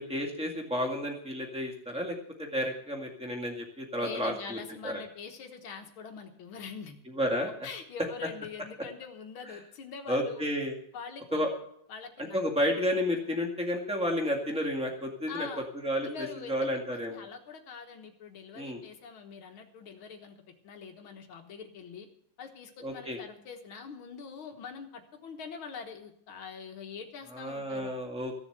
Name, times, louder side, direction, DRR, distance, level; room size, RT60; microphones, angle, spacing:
voice 1, 0.0-4.6 4.8-5.0 7.1-7.7 10.1-10.7 11.3-11.5 12.2-15.5 15.7-17.2 18.5-18.8 22.8-23.2 27.3-28.4, equal, 5° right, 2 dB, 0.7 m, -31 dB
voice 2, 4.0-7.0 7.6-10.4 10.9-11.4 11.9-12.4 15.3-15.7 16.0-16.7 17.1-20.4 20.6-22.1 22.4-27.9, left 6 dB, 55° left, 4 dB, 1.5 m, -44 dB
16.0 x 7.1 x 7.9 m, 0.69 s
omnidirectional pair, 3.8 m